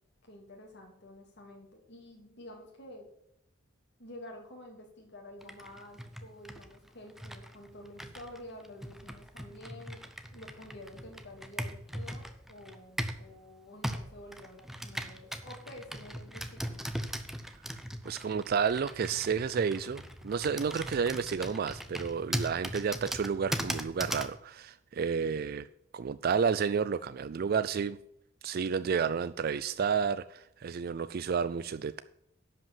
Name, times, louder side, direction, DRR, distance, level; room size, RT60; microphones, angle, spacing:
voice 1, 0.2-3.1 4.0-10.0 10.3-17.0, left 1 dB, 60° left, 3.1 m, -49 dB
Computer keyboard, 5.4-13.3 13.8-24.4, equal, ahead, 0.7 m, -39 dB
voice 2, 18.0-25.7 25.9-28.0 28.4-32.0, right 6 dB, 50° right, 0.4 m, -31 dB
11.0 x 5.4 x 7.2 m
head